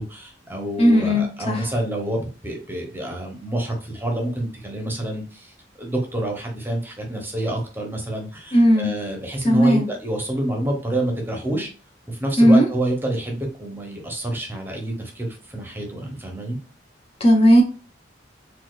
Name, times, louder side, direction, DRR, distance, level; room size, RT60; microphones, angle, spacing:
voice 1, 0.0-11.7 12.1-16.6, right 1 dB, 10° right, 0.7 m, -28 dB
voice 2, 0.8-1.7 8.5-8.9 9.4-9.9 12.4-12.7 17.2-17.6, equal, 35° left, 0.5 m, -15 dB
4.1 x 2.3 x 2.3 m
head